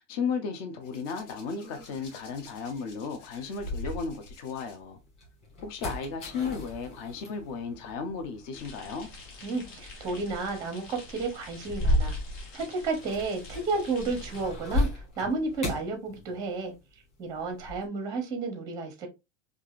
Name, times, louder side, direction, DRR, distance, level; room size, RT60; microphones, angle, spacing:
voice 1, 0.0-5.0 5.6-9.1, left 5 dB, 35° left, 0.5 m, -34 dB
Hands, 0.8-4.8 5.8-6.0, left 2 dB, 85° left, 1.4 m, -43 dB
sound 1, 1.8-4.6 5.0-16.8 17.0-17.9, left 1 dB, 15° left, 1.9 m, -35 dB
sound 2, 8.5-14.4, left 3 dB, 55° left, 1.9 m, -48 dB
voice 2, 9.4-12.2 12.5-16.7 17.2-19.1, right 3 dB, 10° right, 0.7 m, -32 dB
4.6 x 2.5 x 2.4 m
supercardioid pair, 160°, 37 cm